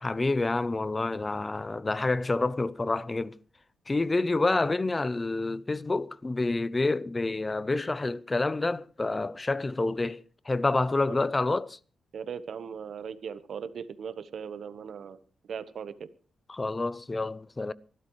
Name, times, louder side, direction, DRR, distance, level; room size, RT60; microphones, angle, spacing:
voice 1, 0.0-3.4 3.9-11.8 16.5-17.7, left 2 dB, 25° left, 0.6 m, -28 dB
voice 2, 12.1-15.2 15.5-16.1, right 7 dB, 70° right, 1.1 m, -38 dB
25.0 x 12.0 x 3.2 m
cardioid pair, 85°, 0 cm